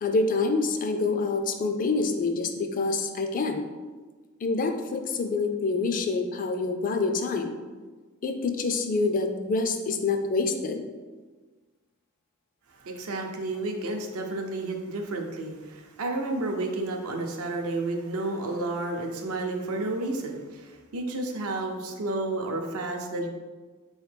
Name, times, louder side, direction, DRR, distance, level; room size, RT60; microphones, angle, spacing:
voice 1, 0.0-3.7 4.4-7.6 8.2-10.8, left 3 dB, 40° left, 5 dB, 0.4 m, -26 dB
voice 2, 12.8-23.3, right 2 dB, 75° right, 2 dB, 0.6 m, -31 dB
4.2 x 3.1 x 3.3 m, 1.4 s
head